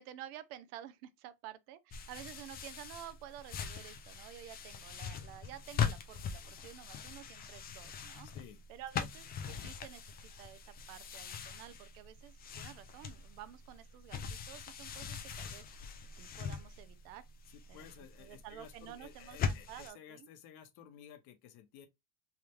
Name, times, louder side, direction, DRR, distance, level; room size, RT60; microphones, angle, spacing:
voice 1, 0.0-8.3 8.7-15.7 16.2-17.3 17.7-17.9 18.2-20.3, right 12 dB, 65° right, 0.6 m, -51 dB
sound 1, 1.9-19.9, left 7 dB, 25° left, 0.3 m, -42 dB
voice 2, 8.2-8.6 9.0-9.1 17.5-21.9, left 9 dB, 55° left, 0.9 m, -55 dB
3.3 x 2.4 x 2.9 m
supercardioid pair, 110°, 47 cm